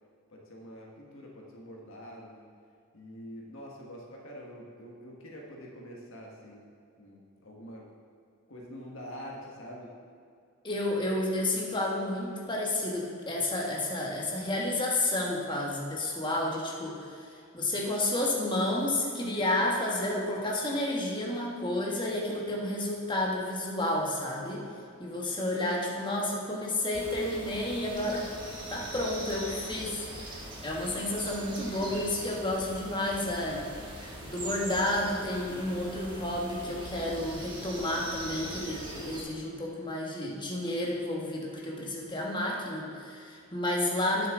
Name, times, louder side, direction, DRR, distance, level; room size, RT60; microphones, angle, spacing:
voice 1, 0.3-2.5 2.9-6.6 7.0-7.9 8.5-9.9, equal, 65° left, -2 dB, 1.6 m, -45 dB
voice 2, 10.6-17.3 17.5-24.6 25.0-28.3 28.7-33.7 34.3-44.3, left 1 dB, 20° left, -2 dB, 1.4 m, -31 dB
sound 1, 26.9-39.2, right 1 dB, 25° right, 1.4 m, -41 dB
9.5 x 7.5 x 3.8 m, 2.4 s
head